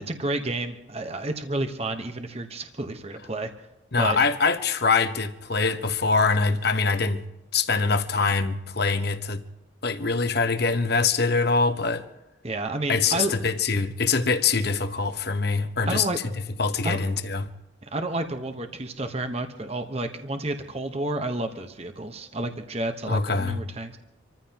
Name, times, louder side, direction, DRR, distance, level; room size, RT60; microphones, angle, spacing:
voice 1, 0.1-3.5 4.0-4.2 12.4-13.3 15.9-16.2 16.8-17.0 17.8-24.0, right 2 dB, 30° right, 1.1 m, -30 dB
voice 2, 3.9-7.2 7.5-9.4 9.8-12.0 12.9-16.1 16.6-17.5 23.1-23.6, left 4 dB, 50° left, 1.1 m, -24 dB
27.0 x 15.0 x 3.0 m
head